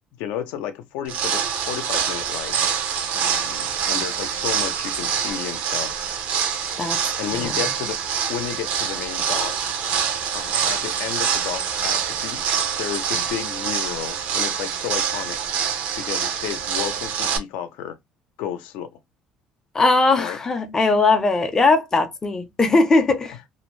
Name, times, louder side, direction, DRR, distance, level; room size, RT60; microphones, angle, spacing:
voice 1, 0.2-2.6 3.1-6.0 7.2-8.0 8.3-9.6 10.3-15.4 16.0-18.0 18.4-18.9 20.2-20.4, left 10 dB, 85° left, 0.5 m, -32 dB
sound 1, 1.0-17.4, right 7 dB, 65° right, 0.6 m, -25 dB
voice 2, 19.7-23.4, left 3 dB, 20° left, 0.5 m, -19 dB
2.6 x 2.0 x 3.0 m
cardioid pair, 130°, 2 cm